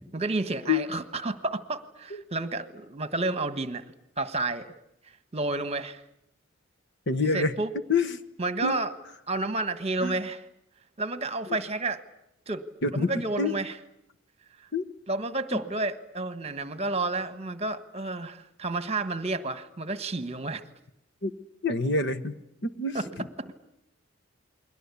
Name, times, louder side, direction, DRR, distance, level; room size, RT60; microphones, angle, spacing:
voice 1, 0.1-3.8 4.2-4.7 5.3-6.0 7.3-7.7 8.4-8.9 9.3-10.4 11.0-12.0 12.5-12.6 12.9-13.8 15.1-20.6 22.9-23.5, right 2 dB, 30° right, 12 dB, 1.4 m, -30 dB
voice 2, 7.1-7.5 7.9-8.1 8.6-8.7 10.0-10.1 12.8-13.1 13.4-13.6 14.7-14.8 15.5-15.6 21.2-21.3 21.6-22.4 22.6-23.0, left 3 dB, 55° left, 12 dB, 1.3 m, -26 dB
29.5 x 22.0 x 8.4 m, 0.80 s
head